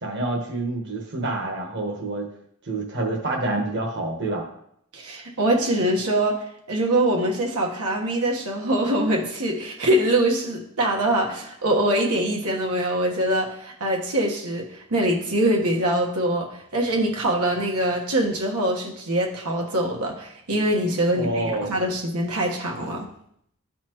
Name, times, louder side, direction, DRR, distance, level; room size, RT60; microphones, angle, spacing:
voice 1, 0.0-2.3 2.6-4.5 21.1-21.8, right 2 dB, 50° right, -1 dB, 1.2 m, -27 dB
voice 2, 4.9-23.1, right 1 dB, 90° right, -1 dB, 1.3 m, -23 dB
12.5 x 4.2 x 3.0 m, 0.72 s
head